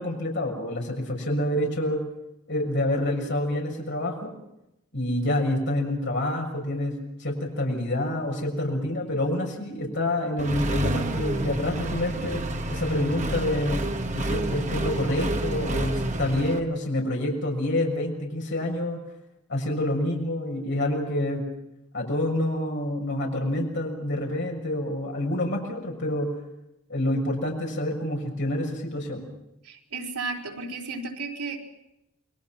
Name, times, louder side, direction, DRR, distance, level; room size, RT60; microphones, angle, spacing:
voice 1, 0.0-2.0 2.5-4.3 4.9-12.4 12.7-13.8 14.1-19.0 19.5-21.4 21.9-26.3 26.9-29.3, left 1 dB, 50° left, 0 dB, 6.7 m, -27 dB
Accelerating revving vroom, 10.4-16.6, right 1 dB, 30° right, 1.6 m, -29 dB
voice 2, 29.6-31.6, right 3 dB, 90° right, 1 dB, 4.4 m, -33 dB
29.5 x 22.0 x 6.0 m, 0.88 s
head